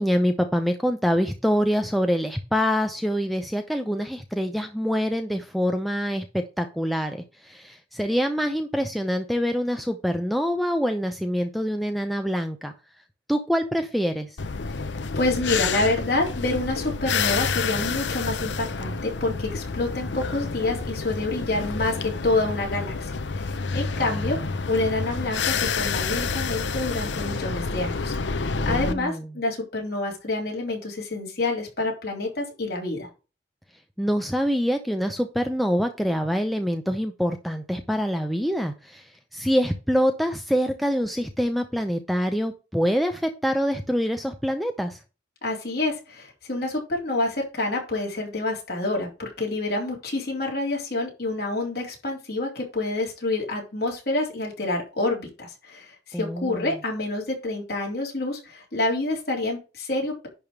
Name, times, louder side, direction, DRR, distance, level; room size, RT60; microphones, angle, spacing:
voice 1, 0.0-12.7 13.3-14.3 28.7-29.2 34.0-39.0 39.3-45.0 56.1-56.7, equal, ahead, 5 dB, 0.6 m, -25 dB
sound 1, 14.4-28.9, left 4 dB, 70° left, 0.7 m, -29 dB
voice 2, 14.7-33.1 45.4-60.3, left 2 dB, 55° left, -2 dB, 3.7 m, -28 dB
10.5 x 3.6 x 6.5 m, 0.31 s
head